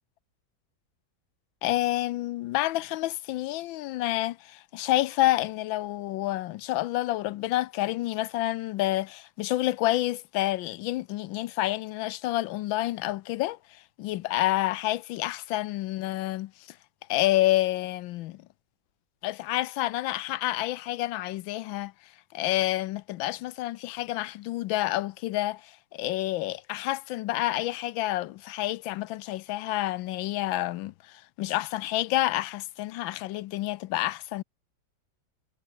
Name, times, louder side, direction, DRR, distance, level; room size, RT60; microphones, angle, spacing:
voice 1, 1.6-13.6 14.0-16.5 17.1-18.4 19.2-21.9 22.3-34.4, left 16 dB, 85° left, 1.3 m, -29 dB
omnidirectional pair, 2.1 m